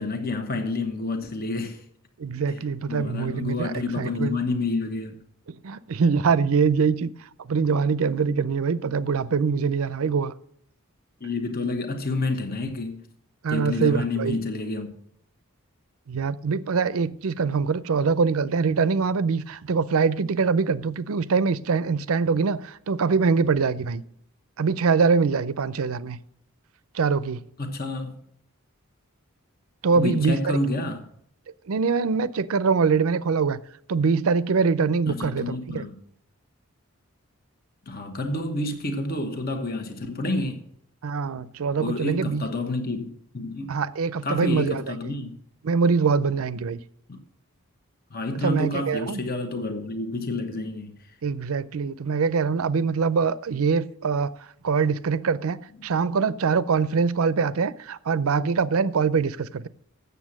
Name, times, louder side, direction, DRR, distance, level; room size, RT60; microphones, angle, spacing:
voice 1, 0.0-1.8 2.5-5.2 11.2-13.0 13.5-14.9 27.6-28.2 29.9-31.0 35.1-35.9 37.9-40.6 41.8-43.8 44.2-45.4 47.1-47.2 48.1-50.9, left 2 dB, 45° left, 1.1 m, -29 dB
voice 2, 2.2-4.4 5.5-7.1 7.5-10.3 13.4-14.4 16.1-24.0 24.6-26.2 26.9-27.4 29.8-30.6 31.7-33.6 33.9-35.8 41.0-42.4 43.7-44.8 45.6-46.8 48.4-49.2 51.2-54.3 54.6-59.7, right 5 dB, 75° right, 0.5 m, -23 dB
8.2 x 6.9 x 7.3 m
head